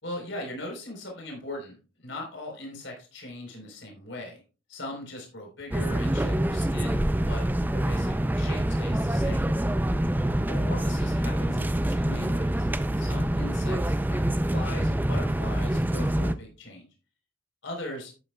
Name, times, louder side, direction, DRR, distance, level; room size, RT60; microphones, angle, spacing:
voice 1, 0.0-4.4 4.7-7.4 7.7-9.5 10.5-12.7 13.0-16.8 17.6-18.1, left 1 dB, 70° left, 0 dB, 3.9 m, -39 dB
sound 1, 5.7-16.3, right 1 dB, 10° right, 0.4 m, -26 dB
12.0 x 9.4 x 2.3 m, 0.33 s
head